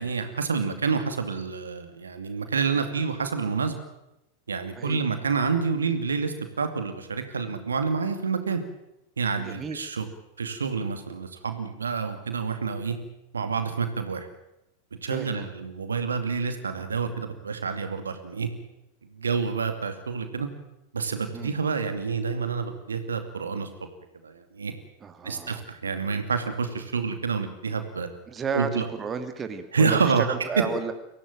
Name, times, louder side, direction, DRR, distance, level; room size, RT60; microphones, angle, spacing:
voice 1, 0.0-3.8 4.5-8.6 9.2-10.1 10.4-12.9 13.3-14.3 15.0-18.5 19.2-20.5 20.9-23.7 24.2-24.7 25.2-28.1 28.5-28.9 29.7-30.3, right 5 dB, 70° right, 8 dB, 2.5 m, -28 dB
voice 2, 9.4-9.8 15.1-15.5 21.3-21.6 25.0-25.6 28.3-30.9, right 5 dB, 20° right, 8 dB, 2.3 m, -33 dB
24.0 x 17.0 x 8.9 m, 0.86 s
figure-of-eight pair, 90°, 0 cm